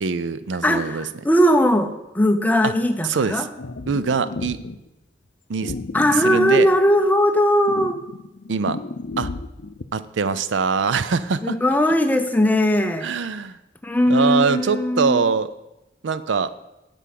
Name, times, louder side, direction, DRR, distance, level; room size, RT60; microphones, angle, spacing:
voice 1, 0.0-1.0 2.6-2.7 3.0-3.5 3.9-4.6 5.5-5.7 6.2-6.7 8.5-8.8 9.2-9.3 9.9-11.6 13.0-13.6 14.1-15.5 16.0-16.5, right 5 dB, 75° right, 14 dB, 0.5 m, -23 dB
voice 2, 0.6-3.5 5.9-8.0 11.4-13.1 13.8-15.3, equal, 10° left, 6 dB, 0.6 m, -19 dB
sound 1, 3.6-4.8 5.6-7.2 7.7-9.8, left 3 dB, 60° left, 0.6 m, -33 dB
8.2 x 5.3 x 7.6 m, 0.94 s
head